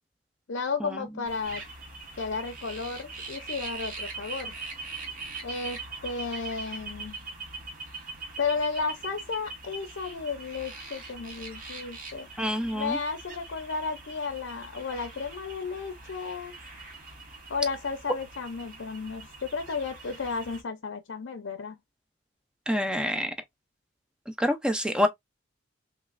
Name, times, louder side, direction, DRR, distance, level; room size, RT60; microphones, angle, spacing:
voice 1, 0.5-1.6 2.2-4.5 5.4-7.2 8.4-12.3 12.7-16.5 17.5-21.8, left 4 dB, 80° left, 0.5 m, -33 dB
sound 1, 1.3-20.6, right 3 dB, 45° right, 0.9 m, -42 dB
voice 2, 12.4-13.0 22.7-23.3 24.4-25.1, equal, 5° right, 0.4 m, -27 dB
3.0 x 3.0 x 2.4 m
head